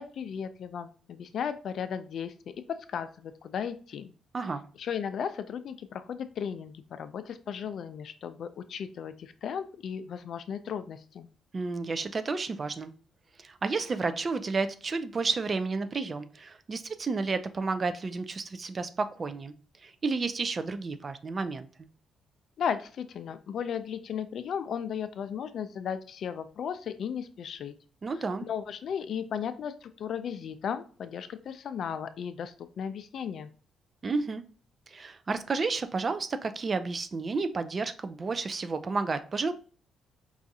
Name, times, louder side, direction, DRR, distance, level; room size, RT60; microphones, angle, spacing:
voice 1, 0.0-2.3 2.7-4.1 4.8-11.3 22.6-27.7 28.5-33.5, left 7 dB, 65° left, 11 dB, 0.4 m, -35 dB
voice 2, 11.5-12.9 13.4-19.5 19.8-21.7 28.0-28.5 34.0-34.4 34.9-39.5, right 4 dB, 35° right, 11 dB, 0.4 m, -31 dB
4.6 x 2.4 x 2.7 m, 0.40 s
cardioid pair, 90°, 0 cm